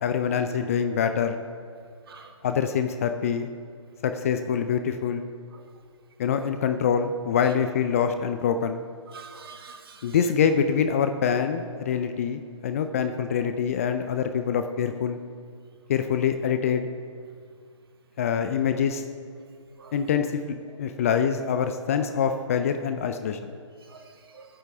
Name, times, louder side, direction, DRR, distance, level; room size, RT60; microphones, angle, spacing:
voice 1, 0.0-1.4 2.4-3.5 4.0-5.3 6.2-8.8 10.0-15.2 15.9-16.9 18.2-19.0 19.9-23.5, left 7 dB, 30° left, 8 dB, 0.6 m, -25 dB
voice 2, 9.1-10.2 19.8-19.9 23.9-24.5, right 5 dB, 50° right, 5 dB, 1.7 m, -46 dB
18.5 x 10.0 x 3.6 m, 2.1 s
figure-of-eight pair, 140°, 16 cm